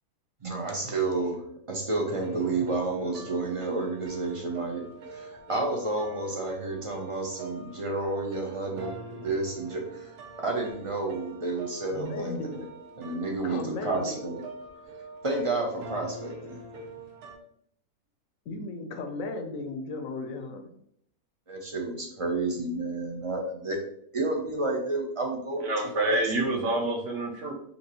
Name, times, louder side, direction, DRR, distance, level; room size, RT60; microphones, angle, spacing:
voice 1, 0.4-12.6 13.0-14.4 15.2-16.6 21.5-23.8 24.1-25.7 26.1-26.3, right 2 dB, 40° right, 1 dB, 0.4 m, -31 dB
sound 1, 2.1-17.4, right 2 dB, 80° right, 1.4 m, -44 dB
voice 2, 11.9-12.7 13.4-14.3 18.5-20.6, left 3 dB, 70° left, 5 dB, 1.0 m, -35 dB
voice 3, 25.6-27.5, right 2 dB, 55° right, 2 dB, 1.1 m, -27 dB
5.5 x 2.9 x 2.9 m, 0.68 s
omnidirectional pair, 1.6 m